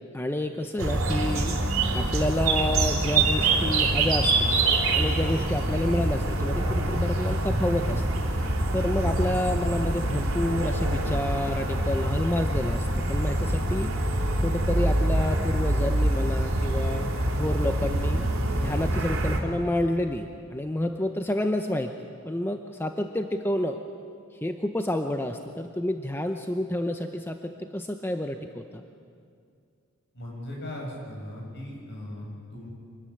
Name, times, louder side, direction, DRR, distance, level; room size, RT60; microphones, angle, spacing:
voice 1, 0.1-4.3 4.9-8.0 8.4-13.9 14.4-17.1 17.4-18.2 18.6-21.9 22.2-23.8 24.4-28.6, left 1 dB, 10° left, 6 dB, 0.7 m, -29 dB
sound 1, 0.8-19.4, right 2 dB, 75° right, 3.1 m, -25 dB
voice 2, 30.1-32.7, left 1 dB, 55° left, -1 dB, 6.9 m, -38 dB
25.0 x 14.0 x 9.9 m, 2.3 s
head